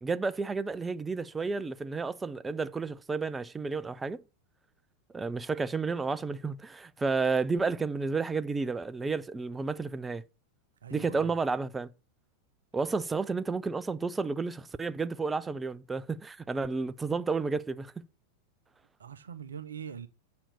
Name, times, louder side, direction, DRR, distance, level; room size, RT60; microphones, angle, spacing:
voice 1, 0.0-4.2 5.1-10.2 10.9-11.9 12.7-18.0, right 4 dB, 10° right, 0.5 m, -31 dB
voice 2, 10.8-11.3 19.0-20.1, right 8 dB, 70° right, 0.7 m, -42 dB
7.4 x 4.3 x 6.7 m
figure-of-eight pair, 90°, 0 cm